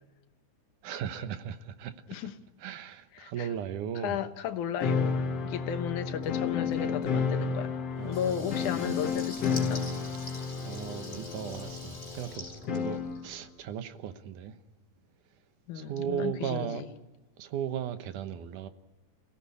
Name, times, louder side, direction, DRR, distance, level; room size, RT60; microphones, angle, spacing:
voice 1, 0.8-1.9 2.6-4.2 8.0-8.9 10.6-14.6 15.7-16.8 17.4-18.7, right 9 dB, 85° right, 2.7 m, -36 dB
voice 2, 3.1-3.5 4.0-9.9 15.7-16.9, left 9 dB, 80° left, 2.6 m, -34 dB
sound 1, 4.8-13.2, left 5 dB, 55° left, 2.5 m, -32 dB
Water tap faucet / Liquid, 8.0-13.5, left 2 dB, 25° left, 4.1 m, -46 dB
29.0 x 16.5 x 8.5 m
omnidirectional pair, 3.5 m